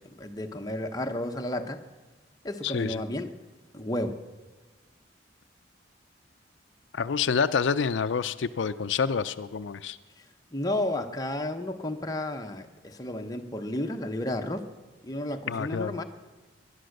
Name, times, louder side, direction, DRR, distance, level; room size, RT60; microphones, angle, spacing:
voice 1, 0.0-1.8 2.4-3.3 3.7-4.2 10.5-14.6 15.0-16.0, left 1 dB, 20° left, 4 dB, 0.9 m, -32 dB
voice 2, 2.6-3.0 6.9-10.0 15.5-16.0, left 6 dB, 75° left, 12 dB, 0.5 m, -27 dB
19.5 x 11.5 x 6.5 m, 1.3 s
head